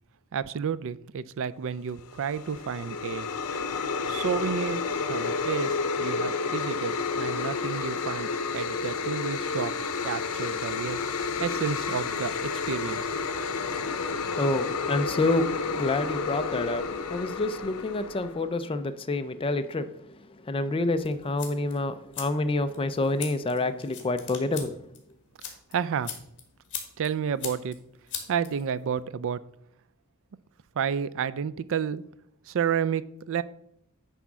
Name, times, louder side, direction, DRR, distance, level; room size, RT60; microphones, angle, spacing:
voice 1, 0.3-3.3 4.1-4.8 5.1-9.7 10.0-11.0 11.4-13.1 25.7-26.1 27.0-27.8 28.3-29.4 30.8-32.0 32.5-33.4, right 7 dB, 60° right, 0.4 m, -31 dB
sound 1, 2.0-18.5, left 4 dB, 90° left, 0.7 m, -31 dB
voice 2, 14.4-20.1 20.4-24.8, left 2 dB, 25° left, 0.4 m, -28 dB
sound 2, 21.0-29.0, left 8 dB, 55° left, 1.6 m, -42 dB
9.9 x 3.5 x 6.1 m
head